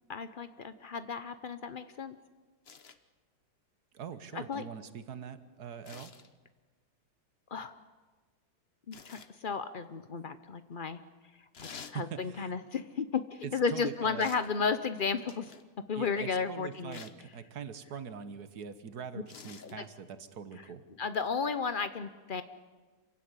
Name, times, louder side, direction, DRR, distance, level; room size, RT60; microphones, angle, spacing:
voice 1, 0.1-2.2 4.3-4.6 7.5-7.7 8.9-11.0 11.4-15.5 15.9-17.0 19.6-19.8 20.5-20.6 21.0-22.4, left 5 dB, 85° left, 11 dB, 0.4 m, -34 dB
sound 1, 2.6-3.0 5.8-6.3 8.9-9.3 11.5-12.0 14.2-14.5 15.3-15.7 16.9-17.2 19.3-19.7 21.1-21.3, left 6 dB, 40° left, 1.0 m, -49 dB
voice 2, 3.9-6.1 11.7-12.6 13.4-14.3 16.0-20.9, right 7 dB, 55° right, 12 dB, 1.7 m, -43 dB
27.0 x 16.5 x 9.8 m, 1.4 s
omnidirectional pair, 2.2 m